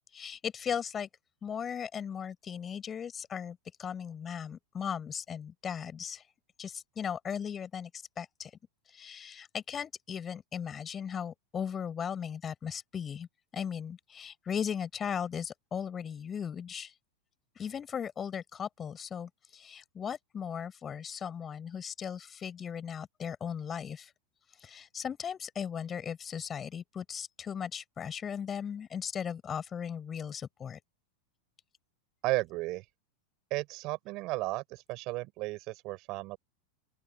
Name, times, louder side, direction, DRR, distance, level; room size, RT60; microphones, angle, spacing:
voice 1, 0.1-1.1 1.4-6.2 6.6-8.5 8.9-13.3 13.5-16.9 17.6-24.1 24.6-30.8, left 7 dB, 20° left, 6.4 m, -37 dB
voice 2, 32.2-32.8 33.5-36.4, right 21 dB, 40° right, 7.5 m, -34 dB
open air
figure-of-eight pair, 90°, 0 cm